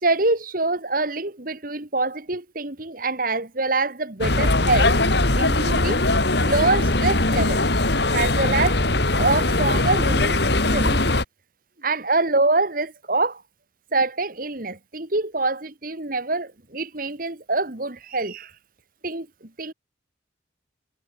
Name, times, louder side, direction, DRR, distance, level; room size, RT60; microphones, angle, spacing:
voice 1, 0.0-5.0 5.3-6.0 6.4-7.6 8.1-8.8 9.2-10.4 10.7-11.0 11.8-13.4 13.9-18.5 19.0-19.3 19.6-19.7, right 3 dB, 45° right, 2.0 m, -25 dB
sound 1, 4.2-11.2, left 2 dB, 60° left, 2.8 m, -20 dB
head